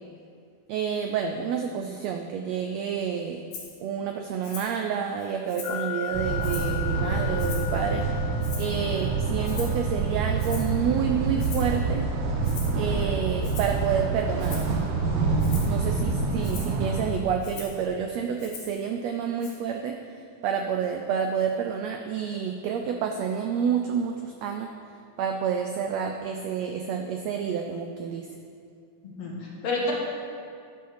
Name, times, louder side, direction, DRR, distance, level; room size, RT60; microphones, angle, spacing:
voice 1, 0.7-3.4 3.8-8.1 8.6-12.1 12.8-14.6 15.7-20.0 20.4-24.7 25.2-28.3, right 7 dB, 85° right, 4 dB, 1.5 m, -29 dB
Rattle (instrument), 3.5-3.7 4.4-4.8 5.2-5.9 6.4-6.8 7.4-7.8 8.4-8.9 9.4-9.8 10.4-10.8 11.4-11.8 12.4-12.8 13.4-13.8 14.4-14.7 15.4-15.8 16.4-16.7 17.4-17.8 18.4-18.8 19.4-19.5, left 5 dB, 90° left, 3.2 m, -41 dB
sound 1, 5.6-18.5, left 7 dB, 75° left, 1.5 m, -40 dB
sound 2, 6.1-17.1, right 4 dB, 60° right, 1.7 m, -27 dB
voice 2, 29.0-29.9, left 2 dB, 55° left, -3 dB, 2.2 m, -31 dB
12.0 x 5.6 x 6.5 m, 2.3 s
omnidirectional pair, 3.7 m